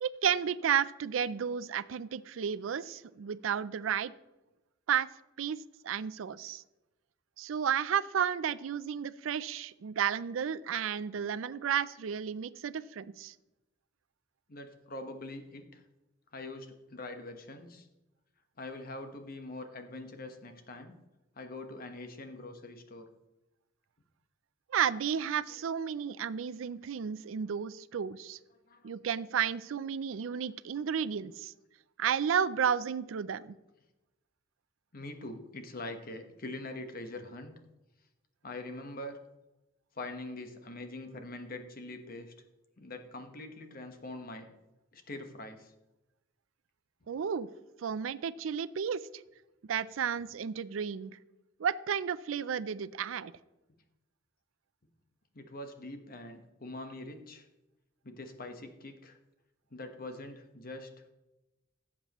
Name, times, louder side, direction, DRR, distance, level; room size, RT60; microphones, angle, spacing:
voice 1, 0.0-4.1 4.9-5.1 5.4-5.6 5.8-6.6 7.4-13.3 24.7-28.4 28.8-31.5 32.0-33.5 47.1-47.5 47.8-49.0 49.6-51.2 51.6-53.3, right 8 dB, 85° right, 16 dB, 0.4 m, -32 dB
voice 2, 14.5-15.8 16.3-17.9 18.6-20.9 21.3-23.1 28.7-29.2 34.9-37.5 38.4-39.2 39.9-42.3 42.8-44.5 44.9-45.7 55.3-57.5 58.0-59.2 59.7-60.9, left 2 dB, 45° left, 6 dB, 1.2 m, -43 dB
16.5 x 7.4 x 3.0 m, 1.0 s
head